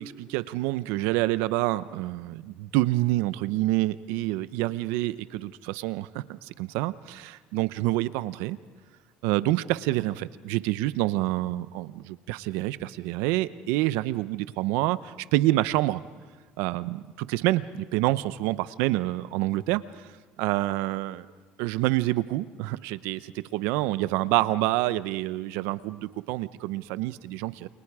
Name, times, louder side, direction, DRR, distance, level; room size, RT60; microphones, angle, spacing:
voice 1, 0.0-8.6 9.2-16.0 16.6-20.1 20.4-21.3 21.6-27.7, right 17 dB, 80° right, 15 dB, 0.8 m, -27 dB
29.0 x 28.0 x 4.9 m, 1.4 s
supercardioid pair, 100°, 4 cm